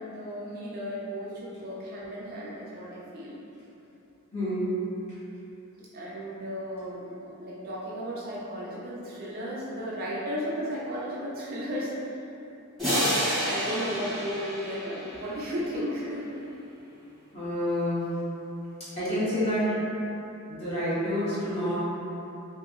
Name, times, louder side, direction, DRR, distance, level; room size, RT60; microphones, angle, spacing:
voice 1, 0.0-3.4 4.6-4.8 5.8-11.9 13.4-16.4 17.6-17.8, equal, 40° right, -6 dB, 0.4 m, -35 dB
voice 2, 4.3-4.8 17.3-18.0 19.0-19.7 20.5-21.8, equal, 25° left, -12 dB, 1.0 m, -28 dB
sound 1, 12.8-15.5, equal, ahead, 1.1 m, -29 dB
2.8 x 2.6 x 2.4 m, 2.8 s
head